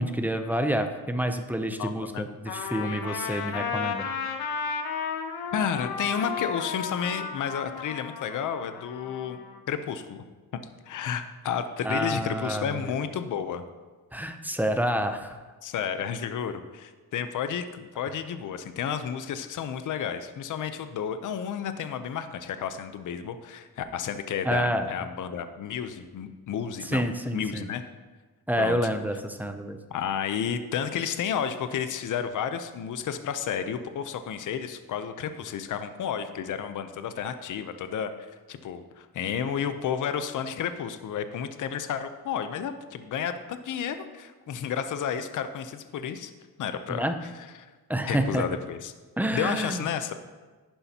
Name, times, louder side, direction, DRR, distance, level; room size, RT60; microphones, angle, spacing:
voice 1, 0.0-4.1 11.8-13.0 14.1-15.4 24.4-24.9 26.8-27.7 28.5-29.8 46.9-47.2 47.9-48.5 49.2-49.8, right 1 dB, 5° right, 6 dB, 0.5 m, -28 dB
voice 2, 1.8-2.3 5.5-9.4 9.7-10.2 10.9-13.6 15.6-27.0 27.3-27.8 28.6-28.8 29.9-46.3 46.6-47.3 47.6-47.7 48.1-48.9 49.3-50.1, left 8 dB, 55° left, 10 dB, 0.7 m, -31 dB
Trumpet, 2.5-9.6, left 6 dB, 75° left, 1.1 m, -33 dB
11.0 x 10.0 x 2.8 m, 1.3 s
cardioid pair, 150°, 38 cm